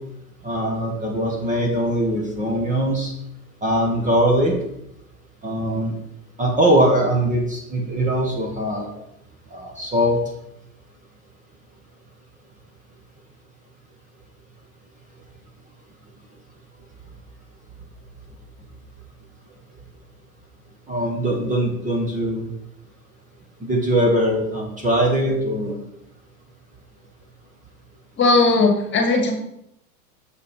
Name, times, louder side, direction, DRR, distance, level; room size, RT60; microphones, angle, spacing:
voice 1, 0.4-3.1 3.6-4.5 5.4-5.9 6.4-8.9 9.5-10.2 20.9-22.5 23.6-25.8, right 1 dB, 15° right, 0 dB, 1.6 m, -21 dB
voice 2, 28.2-29.3, left 3 dB, 25° left, 2 dB, 2.1 m, -17 dB
6.7 x 6.5 x 5.3 m, 0.78 s
hypercardioid pair, 115°, 47 cm